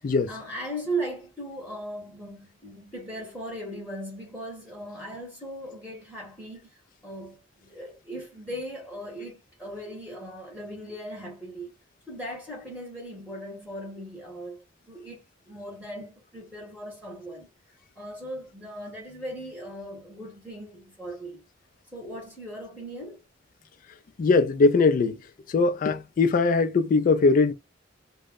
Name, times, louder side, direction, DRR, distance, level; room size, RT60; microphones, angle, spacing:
voice 1, 0.0-11.7 12.1-17.5 18.0-21.4 21.9-23.2, right 1 dB, 5° left, 0.8 m, -38 dB
voice 2, 24.2-25.2 25.5-27.5, left 3 dB, 45° left, 0.3 m, -21 dB
2.1 x 2.0 x 3.5 m
head